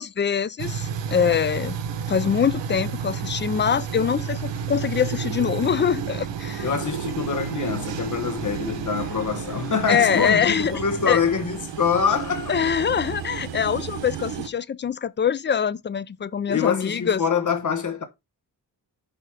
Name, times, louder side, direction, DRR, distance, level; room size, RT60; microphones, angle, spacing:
voice 1, 0.0-1.8 2.1-6.7 9.9-10.8 11.1-11.2 12.5-17.2, left 7 dB, 30° left, 0.4 m, -24 dB
sound 1, 0.6-14.5, right 7 dB, 90° right, 1.1 m, -31 dB
voice 2, 6.6-12.6 16.5-18.0, left 6 dB, 45° left, 1.1 m, -25 dB
5.8 x 5.4 x 4.7 m
wide cardioid pair, 120°, 42 cm